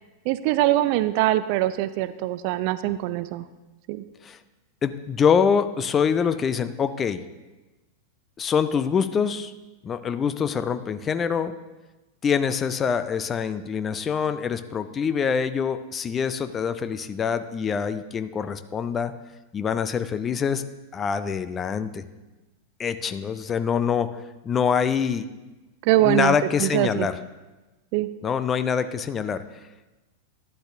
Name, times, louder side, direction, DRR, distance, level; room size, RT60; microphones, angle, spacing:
voice 1, 0.3-3.4 3.9-4.0 25.8-26.3 26.6-27.1 27.9-28.1, right 15 dB, 45° right, 14 dB, 0.4 m, -23 dB
voice 2, 4.8-7.2 8.4-9.5 9.8-11.5 12.2-19.2 19.5-20.6 20.9-22.1 22.8-25.3 26.0-27.2 28.2-29.4, left 6 dB, 25° left, 12 dB, 0.4 m, -25 dB
11.5 x 11.0 x 2.6 m, 1.1 s
figure-of-eight pair, 90°, 0 cm